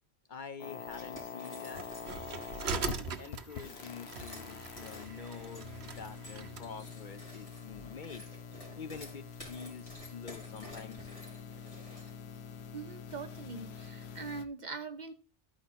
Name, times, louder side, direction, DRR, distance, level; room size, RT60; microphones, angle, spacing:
voice 1, 0.3-1.9 2.7-8.3 8.7-11.1, left 6 dB, 55° left, 10 dB, 0.7 m, -47 dB
sound 1, 0.6-14.4, left 6 dB, 80° left, 1.0 m, -46 dB
sound 2, 0.9-2.9 3.5-12.4, equal, 30° left, 3.7 m, -52 dB
sound 3, 1.7-6.7, right 5 dB, 80° right, 1.1 m, -41 dB
voice 2, 12.7-15.1, right 4 dB, 45° right, 7 dB, 1.1 m, -42 dB
12.5 x 5.0 x 4.2 m, 0.35 s
omnidirectional pair, 1.1 m